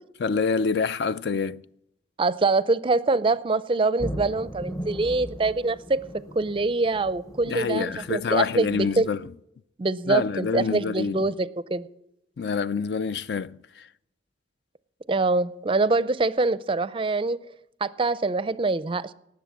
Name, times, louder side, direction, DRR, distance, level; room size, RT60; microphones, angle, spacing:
voice 1, 0.2-1.6 7.5-9.2 10.1-11.2 12.4-13.9, left 5 dB, 65° left, 0.4 m, -26 dB
voice 2, 2.2-6.0 6.4-9.1 9.8-11.9 15.1-17.4 17.8-19.1, right 3 dB, 30° right, 0.4 m, -24 dB
sound 1, 4.0-9.1, equal, 20° left, 0.9 m, -38 dB
18.5 x 7.6 x 7.2 m
head